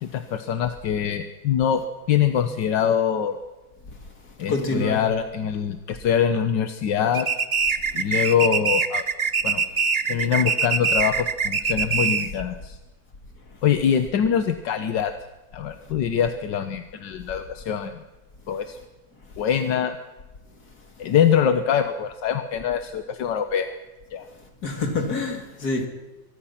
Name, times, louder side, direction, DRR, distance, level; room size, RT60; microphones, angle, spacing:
voice 1, 0.0-1.8 2.1-3.4 4.4-7.3 7.9-9.0 9.4-9.6 10.1-12.8 13.6-15.1 15.5-18.0 18.5-18.8 19.4-20.0 21.0-23.7 24.1-24.3, left 8 dB, 80° left, 1.7 m, -23 dB
voice 2, 4.5-5.0 24.6-25.9, left 3 dB, 60° left, 3.3 m, -26 dB
sound 1, 7.1-12.4, right 5 dB, 45° right, 0.5 m, -23 dB
24.0 x 20.0 x 5.9 m
omnidirectional pair, 1.9 m